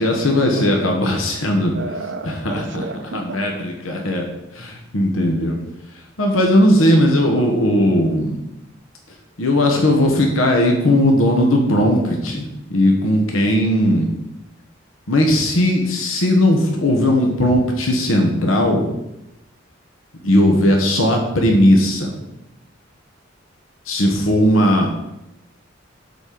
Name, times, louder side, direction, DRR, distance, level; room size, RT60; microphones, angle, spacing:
voice 1, 0.0-1.7 2.2-2.8 3.1-4.3 4.5-5.6 6.2-8.4 9.4-14.1 15.1-18.8 20.2-22.2 23.9-24.9, left 1 dB, 85° left, 2 dB, 1.2 m, -17 dB
voice 2, 1.7-3.7 24.7-24.9, right 2 dB, 65° right, 5 dB, 0.9 m, -32 dB
8.0 x 4.3 x 6.7 m, 0.89 s
head